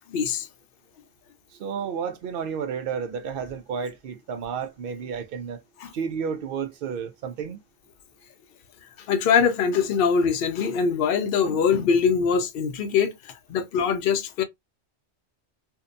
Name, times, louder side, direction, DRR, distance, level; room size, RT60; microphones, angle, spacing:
voice 1, 0.1-0.5 5.8-5.9 9.0-14.4, left 6 dB, 65° left, 0.7 m, -23 dB
voice 2, 1.6-5.6 5.9-7.6, right 6 dB, 60° right, 0.7 m, -31 dB
2.7 x 2.1 x 2.4 m
omnidirectional pair, 1.1 m